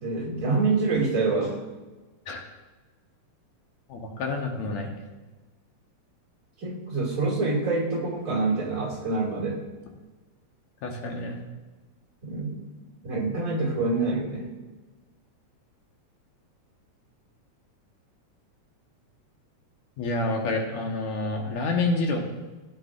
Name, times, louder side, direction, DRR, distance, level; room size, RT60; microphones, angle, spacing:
voice 1, 0.0-1.6 6.6-9.6 12.2-12.6 13.0-14.5, right 3 dB, 30° right, -3 dB, 2.4 m, -26 dB
voice 2, 3.9-4.9 10.8-11.4 20.0-22.2, left 2 dB, 70° left, 2 dB, 2.4 m, -28 dB
15.0 x 8.8 x 2.5 m, 1.2 s
omnidirectional pair, 3.5 m